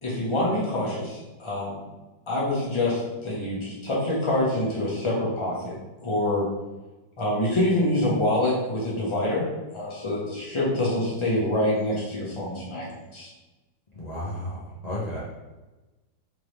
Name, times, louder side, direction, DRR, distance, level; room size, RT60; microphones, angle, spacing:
voice 1, 0.0-1.8 2.3-5.7 6.0-6.4 7.2-9.4 9.7-12.9 13.1-13.3, left 1 dB, 20° left, -5 dB, 0.9 m, -26 dB
voice 2, 13.9-15.2, left 1 dB, 45° left, -7 dB, 0.5 m, -33 dB
3.8 x 3.5 x 3.2 m, 1.1 s
omnidirectional pair, 2.0 m